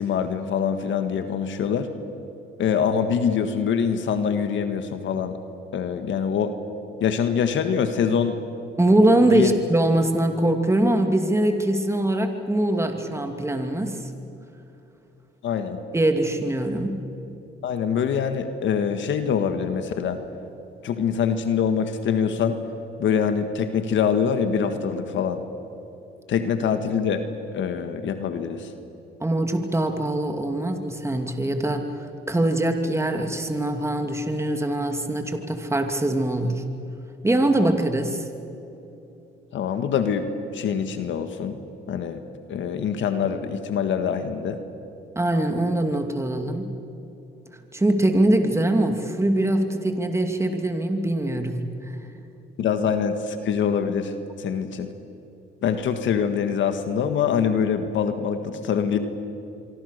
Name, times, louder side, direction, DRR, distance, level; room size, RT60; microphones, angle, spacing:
voice 1, 0.0-1.9 2.6-5.4 5.7-6.5 7.0-8.4 9.3-9.5 15.4-15.8 17.6-20.2 20.8-22.6 23.0-25.4 26.3-27.2 27.5-28.7 39.5-40.3 40.5-41.6 41.9-42.2 42.5-44.6 52.6-54.1 54.4-54.9 55.6-59.0, left 7 dB, 70° left, 8 dB, 1.7 m, -24 dB
voice 2, 8.8-14.1 15.9-17.1 29.2-36.6 37.2-38.2 45.2-46.7 47.7-52.0, right 1 dB, 15° right, 5 dB, 2.6 m, -23 dB
25.0 x 24.5 x 6.7 m, 2.9 s
cardioid pair, 90°, 20 cm